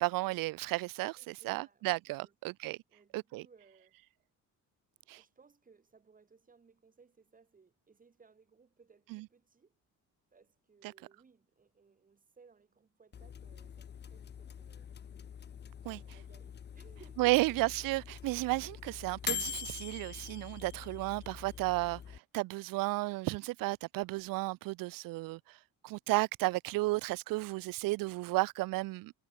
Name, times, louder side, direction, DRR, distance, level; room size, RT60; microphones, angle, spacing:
voice 1, 0.0-2.8 3.1-3.4 5.1-5.2 9.1-9.2 15.9-16.0 17.2-22.0 22.3-25.4 25.8-29.1, right 21 dB, 85° right, 0.5 m, -33 dB
voice 2, 1.2-2.6 2.9-4.0 5.0-9.7 10.3-14.9 15.8-17.6, right 5 dB, 25° right, 5.8 m, -63 dB
sound 1, 13.1-22.2, left 8 dB, 30° left, 1.1 m, -44 dB
cardioid pair, 155°, 33 cm